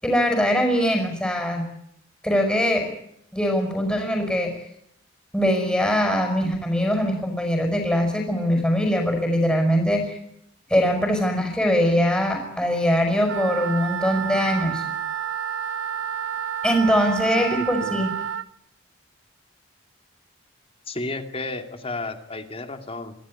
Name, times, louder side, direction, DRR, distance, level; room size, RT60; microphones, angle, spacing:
voice 1, 0.0-1.7 2.2-2.9 3.3-4.5 5.3-10.2 10.7-14.8 16.6-18.1, equal, 5° left, 2 dB, 5.8 m, -22 dB
Wind instrument woodwind instrument, 13.2-18.5, right 8 dB, 75° right, 1.3 m, -29 dB
voice 2, 17.6-18.0 20.9-23.1, left 2 dB, 30° left, 7 dB, 2.5 m, -32 dB
26.0 x 15.5 x 9.9 m, 0.75 s
head